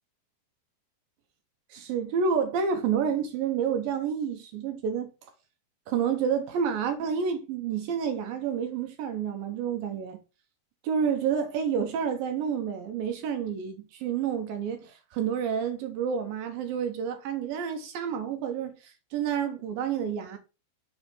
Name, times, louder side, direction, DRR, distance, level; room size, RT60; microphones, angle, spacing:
voice 1, 1.7-5.1 5.9-10.2 10.8-20.4, right 7 dB, 75° right, 2.4 m, -29 dB
7.3 x 3.9 x 5.4 m
omnidirectional pair, 4.5 m